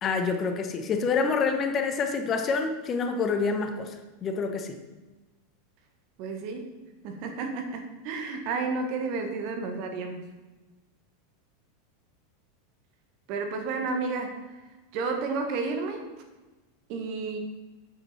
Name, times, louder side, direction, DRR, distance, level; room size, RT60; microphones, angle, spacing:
voice 1, 0.0-4.0 4.2-4.8, left 5 dB, 35° left, 6 dB, 1.2 m, -27 dB
voice 2, 6.2-6.7 7.0-10.3 13.3-14.4 14.9-16.0 16.9-17.4, right 4 dB, 50° right, 5 dB, 1.7 m, -31 dB
9.1 x 8.2 x 4.3 m, 1.2 s
figure-of-eight pair, 90°, 0 cm